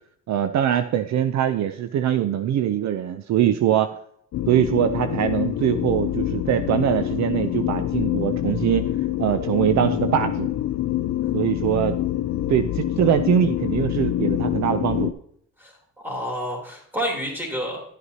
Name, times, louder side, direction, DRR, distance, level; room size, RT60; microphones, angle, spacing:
voice 1, 0.3-3.9 4.5-8.9 9.2-10.5 11.3-12.0 12.5-15.1, right 10 dB, 65° right, 10 dB, 0.6 m, -22 dB
sound 1, 4.3-15.1, left 12 dB, 60° left, 0.5 m, -26 dB
voice 2, 15.6-17.8, equal, 5° right, -1 dB, 2.9 m, -29 dB
11.0 x 8.0 x 2.8 m, 0.66 s
cardioid pair, 90°, 30 cm